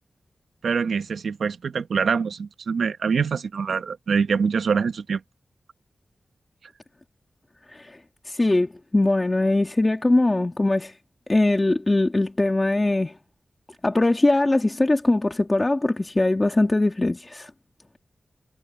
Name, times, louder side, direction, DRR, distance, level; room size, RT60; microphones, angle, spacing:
voice 1, 0.6-5.2, right 5 dB, 90° right, 1.1 m, -24 dB
voice 2, 7.7-8.0 8.2-10.9 11.3-13.1 13.8-17.5, left 2 dB, 30° left, 1.8 m, -21 dB
cardioid pair, 60°, 0 cm